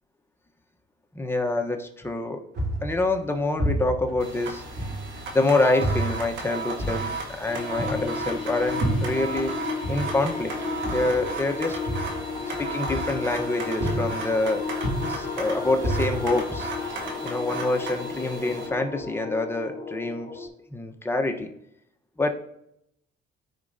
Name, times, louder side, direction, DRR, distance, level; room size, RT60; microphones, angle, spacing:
voice 1, 1.1-2.4 2.8-4.6 5.3-9.5 9.9-10.5 10.9-11.8 12.5-14.6 15.1-16.7 17.2-21.5 22.2-22.3, left 2 dB, 10° left, 3 dB, 1.1 m, -26 dB
sound 1, 2.5-5.4 5.8-9.5 9.8-13.5 13.8-14.4 14.7-17.0, right 1 dB, 55° right, 3.1 m, -30 dB
sound 2, 4.2-18.7, right 3 dB, 75° right, 1.7 m, -36 dB
sound 3, 7.5-20.5, left 5 dB, 35° left, 2.1 m, -34 dB
13.5 x 4.9 x 2.8 m, 0.77 s
cardioid pair, 90°, 20 cm